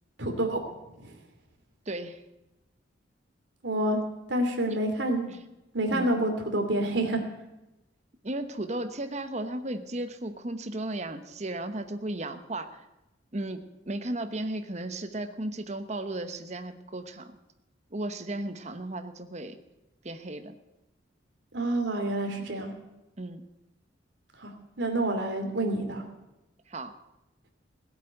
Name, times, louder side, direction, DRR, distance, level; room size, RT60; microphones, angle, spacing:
voice 1, 0.2-0.6 1.0-1.1 3.6-4.0 4.3-5.3 5.7-7.2 21.5-22.7 24.4-24.5 24.8-26.0, right 1 dB, 70° right, 4 dB, 2.8 m, -28 dB
voice 2, 1.9-2.2 4.7-4.8 5.3-5.4 5.9-6.2 8.2-12.8 13.3-17.3 17.9-19.6 20.0-20.5 23.2-23.4 26.7-26.9, right 1 dB, 35° right, 8 dB, 1.0 m, -35 dB
17.0 x 8.5 x 9.0 m, 0.95 s
head